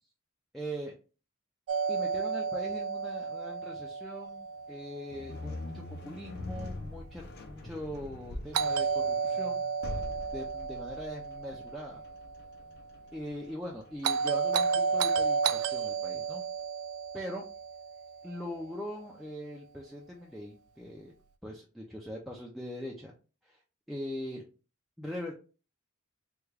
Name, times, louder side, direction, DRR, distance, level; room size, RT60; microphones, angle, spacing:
voice 1, 0.5-0.9 1.9-9.7 10.3-12.0 13.1-16.4 17.1-17.5 18.2-21.1 21.4-23.1 23.4-23.6 23.9-24.4 25.0-25.3, equal, ahead, -2 dB, 0.3 m, -41 dB
Doorbell, 1.7-5.7 8.5-12.8 14.0-18.4, right 5 dB, 85° right, 0.3 m, -32 dB
sound 1, 5.1-16.2, left 2 dB, 50° left, 0.5 m, -44 dB
3.5 x 2.2 x 3.2 m, 0.35 s
head